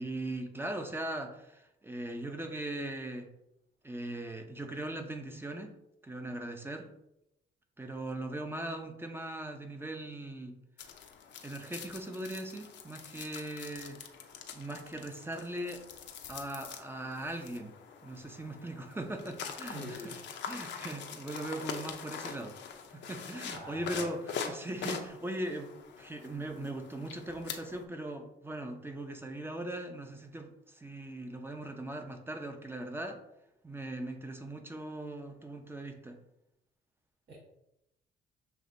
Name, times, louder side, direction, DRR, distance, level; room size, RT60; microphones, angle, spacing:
voice 1, 0.0-3.3 3.8-5.7 6.0-6.9 7.8-10.6 11.4-14.0 14.5-15.8 16.3-17.8 18.0-20.2 20.5-22.6 22.9-25.7 26.0-33.2 33.6-36.2, right 1 dB, 10° right, 5 dB, 0.7 m, -39 dB
sound 1, 10.8-27.8, left 6 dB, 65° left, 0.7 m, -44 dB
voice 2, 19.7-20.1 23.5-24.1 37.3-37.4, equal, 55° right, -6 dB, 1.4 m, -43 dB
6.9 x 2.9 x 2.7 m, 0.84 s
cardioid pair, 90°, 20 cm